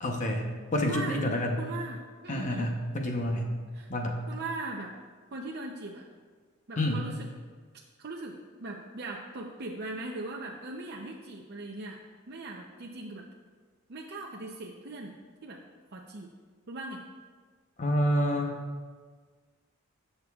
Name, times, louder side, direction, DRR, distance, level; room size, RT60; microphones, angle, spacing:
voice 1, 0.0-0.4 0.7-1.6 2.3-3.5 3.9-4.2 6.8-7.0 17.8-18.5, left 1 dB, 35° left, 2 dB, 0.8 m, -28 dB
voice 2, 0.8-1.3 1.6-2.7 3.7-3.9 4.3-4.9 5.3-6.0 6.7-7.3 8.0-12.0 12.3-13.3 13.9-15.1 15.4-15.6 15.9-16.3 16.7-17.0, right 2 dB, 50° right, -1 dB, 0.6 m, -39 dB
17.0 x 6.7 x 2.4 m, 1.5 s
head